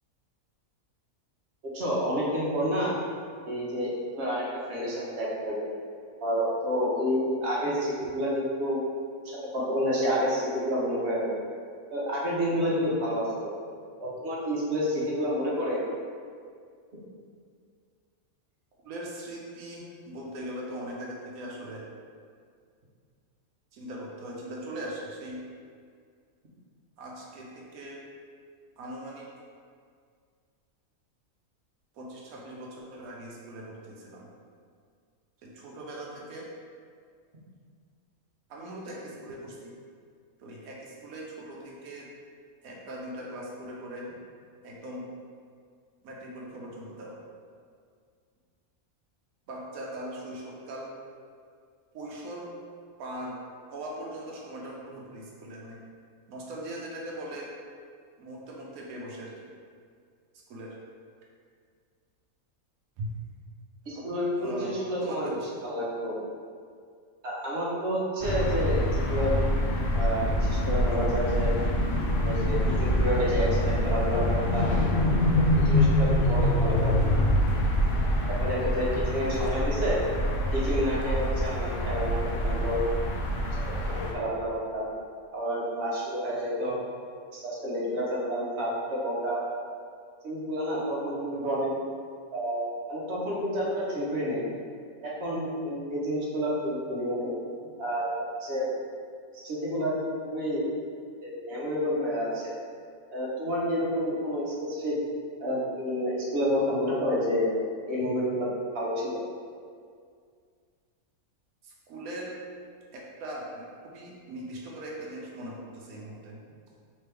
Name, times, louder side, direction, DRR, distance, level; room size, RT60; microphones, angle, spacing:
voice 1, 1.7-2.9 3.5-5.6 6.2-8.8 9.2-11.4 11.9-13.5 14.0-15.8 63.9-65.3 65.6-66.2 67.2-69.4 69.9-71.5 72.2-74.7 75.3-77.0 78.4-80.0 80.5-82.2 82.4-82.8 83.9-84.9 85.3-86.8 87.3-89.4 90.2-91.7 92.3-94.4 95.0-97.3 97.8-98.1 98.4-98.7 99.3-99.9 100.2-100.7 101.2-102.5 103.1-104.9 105.4-107.5 107.9-108.5 108.7-109.2, equal, 50° right, -6 dB, 1.0 m, -29 dB
voice 2, 18.8-21.9 23.7-25.4 27.0-28.0 28.8-29.3 31.9-34.3 35.4-36.5 38.5-39.7 40.4-42.1 42.6-44.1 44.6-45.1 46.0-47.2 49.5-50.9 51.9-52.5 53.0-55.8 56.3-57.5 58.2-59.5 60.5-60.8 63.0-63.1 63.9-64.1 64.4-64.7 65.0-65.4 82.0-82.1 91.3-91.6 111.6-112.3 112.9-116.4, right 1 dB, 85° right, -3 dB, 1.1 m, -40 dB
sound 1, 68.2-84.1, left 1 dB, 80° left, 0.5 m, -25 dB
3.3 x 3.3 x 3.3 m, 2.1 s
omnidirectional pair, 1.5 m